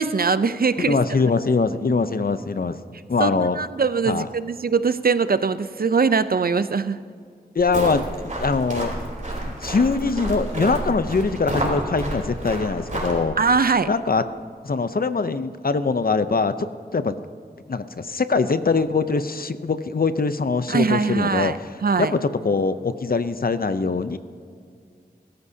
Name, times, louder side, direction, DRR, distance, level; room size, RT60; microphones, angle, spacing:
voice 1, 0.0-1.0 3.2-7.0 13.4-13.9 20.7-22.1, right 5 dB, 65° right, 13 dB, 0.5 m, -22 dB
voice 2, 0.9-2.8 3.1-3.6 4.1-4.3 7.5-8.9 9.4-13.4 13.9-14.2 14.6-17.2 17.7-21.7 22.0-24.2, left 4 dB, 65° left, 11 dB, 0.7 m, -23 dB
sound 1, 7.6-13.2, right 1 dB, 50° right, 3.4 m, -30 dB
21.5 x 13.5 x 2.8 m, 2.3 s
wide cardioid pair, 50°, 16 cm